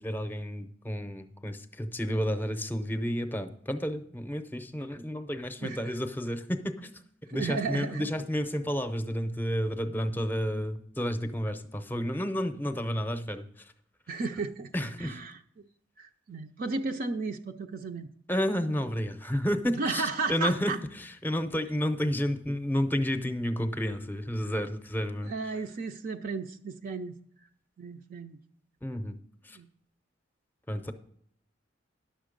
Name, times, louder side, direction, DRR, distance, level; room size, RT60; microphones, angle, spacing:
voice 1, 0.0-6.9 7.3-13.7 14.7-15.2 18.3-25.3 28.8-29.2 29.4-29.6 30.7-30.9, equal, 10° left, 9 dB, 0.6 m, -31 dB
voice 2, 5.6-5.9 7.3-8.1 14.1-15.7 16.0-18.1 19.8-20.8 25.2-27.2 27.8-28.4 29.5-29.7, right 4 dB, 50° right, 5 dB, 0.5 m, -34 dB
10.5 x 6.7 x 5.1 m, 0.66 s
head